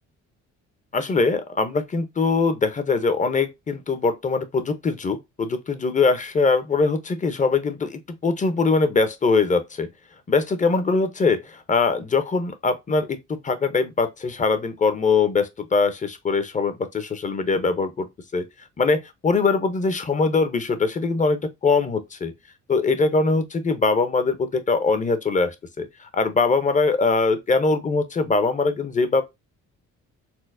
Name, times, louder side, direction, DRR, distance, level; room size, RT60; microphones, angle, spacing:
voice 1, 0.9-9.9 10.3-18.1 18.3-18.4 18.8-22.3 22.7-29.2, left 4 dB, 25° left, 0.6 m, -22 dB
4.3 x 2.1 x 2.5 m
cardioid pair, 90°, 30 cm